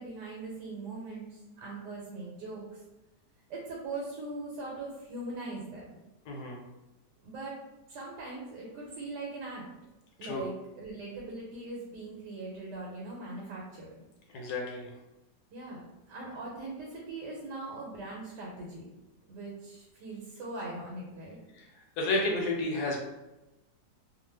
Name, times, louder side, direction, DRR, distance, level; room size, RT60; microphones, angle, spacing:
voice 1, 0.0-2.8 3.5-6.0 7.2-7.6 7.9-9.6 10.2-13.9 15.5-18.9 19.3-21.4, right 2 dB, 85° right, -3 dB, 1.3 m, -41 dB
voice 2, 6.3-6.6 10.2-10.4 14.3-14.9 21.5-21.7 22.0-23.0, left 2 dB, 75° left, -1 dB, 1.1 m, -31 dB
2.8 x 2.3 x 3.1 m, 0.99 s
omnidirectional pair, 1.8 m